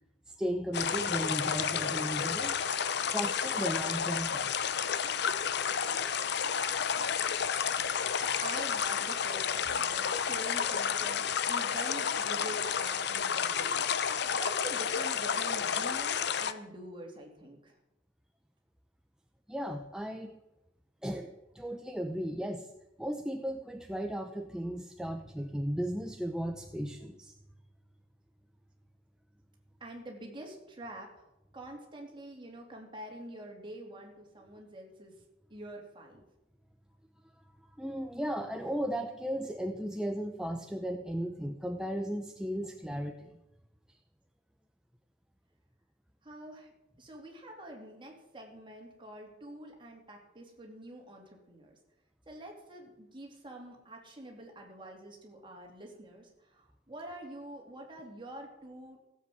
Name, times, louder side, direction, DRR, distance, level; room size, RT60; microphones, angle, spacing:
voice 1, 0.3-2.6 3.1-4.9 19.5-20.3 21.0-22.7 23.0-27.3 37.8-43.4, equal, 5° right, 5 dB, 0.6 m, -36 dB
sound 1, 0.7-16.5, left 7 dB, 60° left, 0.7 m, -31 dB
voice 2, 8.4-17.8 29.8-31.2 31.5-35.1 35.5-36.2 46.2-46.7 47.0-51.7 52.3-59.0, right 1 dB, 25° right, 0 dB, 3.0 m, -46 dB
15.5 x 7.9 x 7.7 m, 0.91 s
head